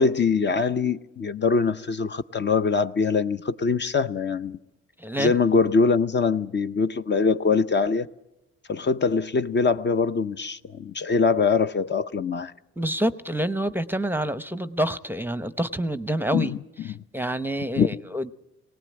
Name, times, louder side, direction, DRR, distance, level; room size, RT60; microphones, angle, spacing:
voice 1, 0.0-4.6 5.2-8.1 8.7-12.5 16.3-16.6 16.8-17.0 17.8-17.9, left 5 dB, 35° left, 0.7 m, -23 dB
voice 2, 5.0-5.3 12.8-16.5 17.1-18.3, right 1 dB, 5° right, 0.7 m, -27 dB
20.5 x 18.0 x 8.7 m
cardioid pair, 90°, 30 cm